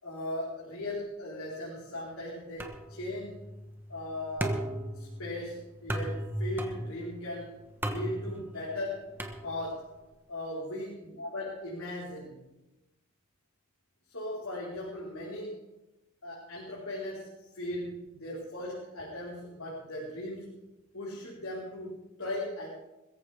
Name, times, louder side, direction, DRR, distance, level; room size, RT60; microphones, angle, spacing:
voice 1, 0.0-3.4 3.9-9.1 9.4-9.9 10.3-12.4 14.1-15.6 16.2-20.6 20.9-22.7, left 1 dB, 75° left, -6 dB, 4.4 m, -38 dB
sound 1, 2.6-10.0, right 1 dB, 10° right, 1.2 m, -37 dB
22.0 x 14.5 x 3.6 m, 0.99 s
head